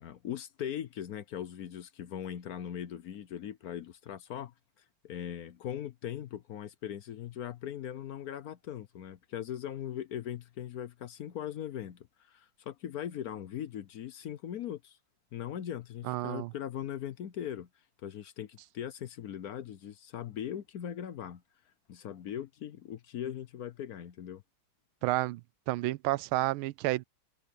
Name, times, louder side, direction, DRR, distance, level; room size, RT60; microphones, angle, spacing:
voice 1, 0.0-4.5 5.0-15.0 15.3-17.7 18.0-21.4 21.9-24.4, left 10 dB, 65° left, 0.9 m, -40 dB
voice 2, 16.0-16.5 25.0-25.4 25.7-27.0, right 17 dB, 85° right, 1.4 m, -30 dB
omnidirectional pair, 2.3 m